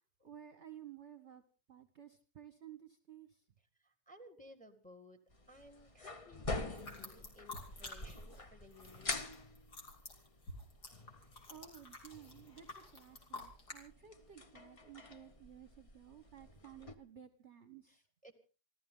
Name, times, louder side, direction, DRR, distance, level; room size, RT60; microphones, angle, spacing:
voice 1, 0.2-1.4 1.7-3.4 11.5-18.0, right 10 dB, 45° right, 10 dB, 1.3 m, -55 dB
voice 2, 3.8-5.2 5.5-9.3 17.9-18.4, equal, 5° left, 9 dB, 1.7 m, -58 dB
sound 1, 5.3-16.9, left 3 dB, 30° left, 0.6 m, -47 dB
sound 2, 6.7-8.4 8.6-13.8, left 2 dB, 65° left, 3.6 m, -50 dB
27.5 x 13.5 x 3.8 m, 0.36 s
omnidirectional pair, 1.9 m